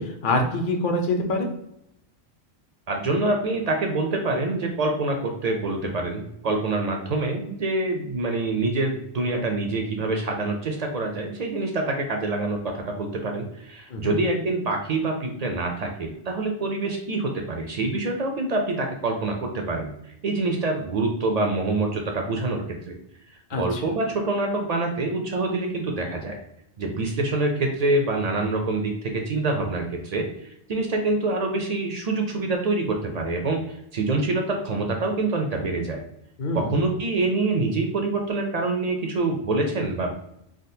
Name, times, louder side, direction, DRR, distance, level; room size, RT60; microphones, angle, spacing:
voice 1, 0.0-1.5 13.9-14.1 23.5-23.8 36.4-36.8, left 1 dB, 55° left, 3 dB, 0.7 m, -25 dB
voice 2, 2.9-19.9 20.2-22.9 23.5-26.4 26.8-36.0 36.5-40.1, right 2 dB, 60° right, 3 dB, 0.4 m, -26 dB
3.6 x 2.3 x 2.6 m, 0.77 s
omnidirectional pair, 1.1 m